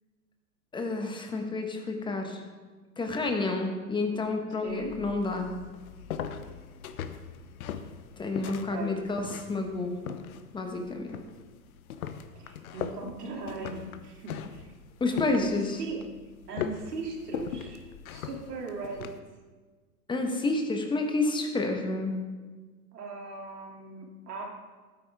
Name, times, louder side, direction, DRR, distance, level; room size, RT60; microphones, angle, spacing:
voice 1, 0.7-2.4 3.0-5.5 8.2-10.0 10.5-11.2 15.0-15.8 20.1-22.1, left 3 dB, 10° left, 4 dB, 1.2 m, -29 dB
voice 2, 4.6-4.9 8.4-9.0 12.3-14.7 15.3-15.5 15.8-16.1 16.5-17.8 18.1-19.1 22.9-24.5, right 4 dB, 75° right, 0 dB, 2.9 m, -39 dB
sound 1, 4.7-19.2, left 8 dB, 60° left, 1.0 m, -40 dB
13.0 x 9.1 x 3.6 m, 1.4 s
hypercardioid pair, 115°, 47 cm